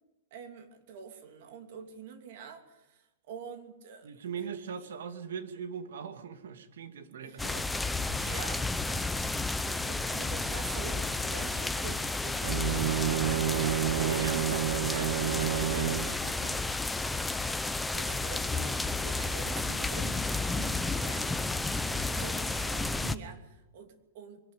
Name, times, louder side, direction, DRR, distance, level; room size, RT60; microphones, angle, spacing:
voice 1, 0.3-4.1 4.4-4.5 4.8-4.9 7.2-7.6 8.2-9.1 9.8-14.3 17.9-21.3 22.1-24.4, right 6 dB, 50° right, 7 dB, 2.9 m, -45 dB
voice 2, 4.0-7.7 14.0-16.6, right 7 dB, 90° right, 10 dB, 2.3 m, -41 dB
sound 1, 7.4-23.2, left 3 dB, 5° left, 0.6 m, -32 dB
Bowed string instrument, 12.4-16.2, right 11 dB, 65° right, 0.6 m, -30 dB
22.5 x 12.5 x 9.7 m, 0.96 s
supercardioid pair, 165°, 0 cm